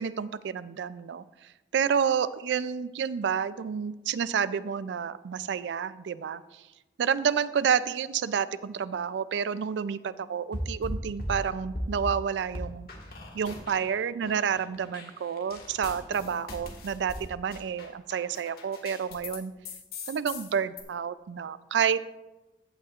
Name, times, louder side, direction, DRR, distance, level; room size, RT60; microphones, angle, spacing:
voice 1, 0.0-6.6 7.0-12.9 13.3-19.5 20.1-22.1, right 7 dB, 80° right, 16 dB, 0.3 m, -29 dB
sound 1, 10.5-12.2 12.5-13.9 14.2-19.4 19.6-20.8, left 1 dB, 55° left, 1.6 m, -38 dB
14.5 x 8.5 x 2.4 m, 1.1 s
head